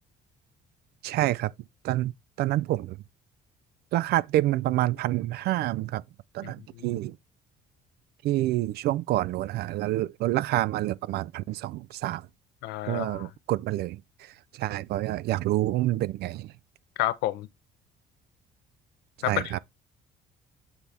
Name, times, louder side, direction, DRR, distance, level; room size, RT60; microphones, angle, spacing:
voice 1, 1.0-1.5 1.8-2.1 2.4-3.0 3.9-6.0 6.3-7.1 8.2-12.2 12.9-14.0 14.6-16.5 19.3-19.6, right 15 dB, 70° right, 0.4 m, -27 dB
voice 2, 6.4-7.0 12.6-13.3 17.0-17.5 19.2-19.6, left 15 dB, 85° left, 0.6 m, -30 dB
8.1 x 3.5 x 4.2 m
cardioid pair, 110°, 17 cm